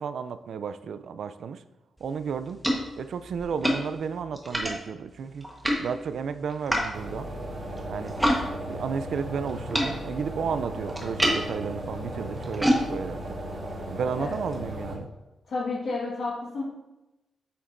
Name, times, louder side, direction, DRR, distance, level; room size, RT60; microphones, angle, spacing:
voice 1, 0.0-1.6 2.0-2.6 3.0-5.5 5.8-7.3 7.9-8.2 8.7-13.3 13.9-15.1, right 6 dB, 70° right, 12 dB, 0.4 m, -33 dB
sound 1, 2.0-8.4 8.7-14.6, equal, 5° right, 1.2 m, -31 dB
sound 2, 6.9-14.9, equal, 45° right, 2.0 m, -36 dB
voice 2, 14.2-14.6 15.5-16.6, left 3 dB, 65° left, -5 dB, 1.6 m, -31 dB
8.6 x 7.1 x 2.6 m, 1.0 s
wide cardioid pair, 140°, 0 cm